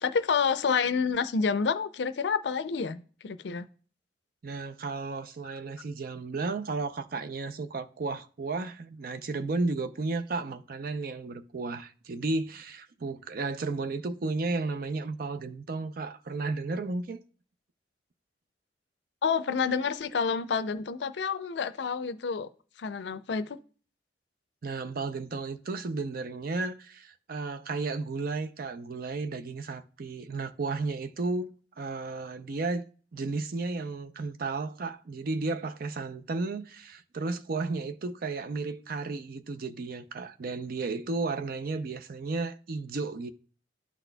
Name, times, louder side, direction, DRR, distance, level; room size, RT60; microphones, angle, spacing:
voice 1, 0.0-3.7 19.2-22.5 22.8-23.6, left 5 dB, 70° left, 0.5 m, -28 dB
voice 2, 4.4-17.2 24.6-32.8 33.1-43.3, right 3 dB, 55° right, 0.5 m, -33 dB
12.5 x 4.2 x 2.2 m
head